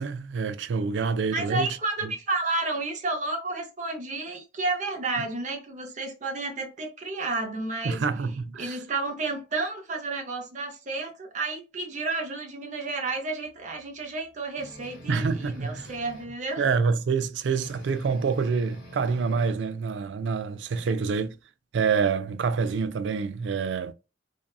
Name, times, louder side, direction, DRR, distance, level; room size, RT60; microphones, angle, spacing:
voice 1, 0.0-1.7 2.0-2.1 7.8-8.8 15.1-15.9 16.6-21.3 21.7-23.9, right 5 dB, 90° right, 0.4 m, -27 dB
voice 2, 1.3-8.0 8.6-16.6 20.8-20.9, right 3 dB, 45° right, 0.7 m, -31 dB
sound 1, 14.5-16.4 17.5-19.5, equal, 50° left, 1.0 m, -45 dB
2.7 x 2.3 x 2.3 m
head